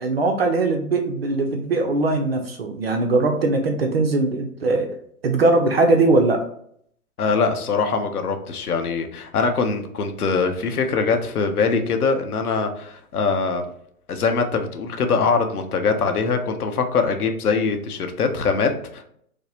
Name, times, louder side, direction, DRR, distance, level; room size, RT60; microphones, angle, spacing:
voice 1, 0.0-5.0 5.2-6.5, right 3 dB, 45° right, 3 dB, 0.5 m, -20 dB
voice 2, 7.2-13.6 14.1-19.0, left 4 dB, 80° left, 6 dB, 0.8 m, -22 dB
5.1 x 2.0 x 2.8 m, 0.68 s
hypercardioid pair, 150°, 44 cm